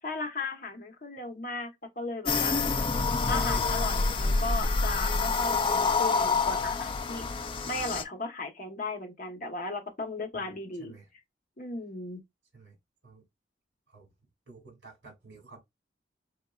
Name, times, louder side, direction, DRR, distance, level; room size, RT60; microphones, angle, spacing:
voice 1, 0.0-1.7 2.0-2.6 3.3-7.3 7.7-10.9 11.6-12.2, left 3 dB, 45° left, 1.0 m, -36 dB
sound 1, 2.3-8.0, left 4 dB, 30° left, 0.4 m, -27 dB
voice 2, 10.3-11.1 12.5-12.8 13.0-13.2 13.9-14.1 14.5-15.6, right 4 dB, 70° right, 2.3 m, -52 dB
3.7 x 3.6 x 2.3 m
head